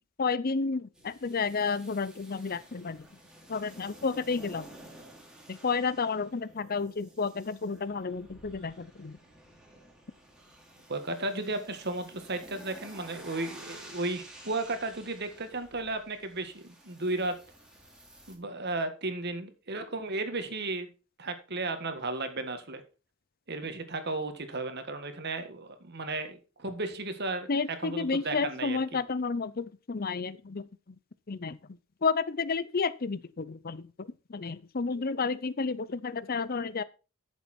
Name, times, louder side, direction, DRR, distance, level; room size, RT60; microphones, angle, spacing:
voice 1, 0.2-3.1 3.5-4.7 5.5-9.2 27.5-31.0 31.3-31.6 32.0-36.8, left 4 dB, 45° left, 0.6 m, -31 dB
sound 1, 0.9-18.4, right 1 dB, 5° right, 2.8 m, -52 dB
voice 2, 10.9-17.4 18.3-20.9 21.2-22.8 23.5-28.8, right 2 dB, 50° right, 1.7 m, -34 dB
13.5 x 7.0 x 4.4 m
head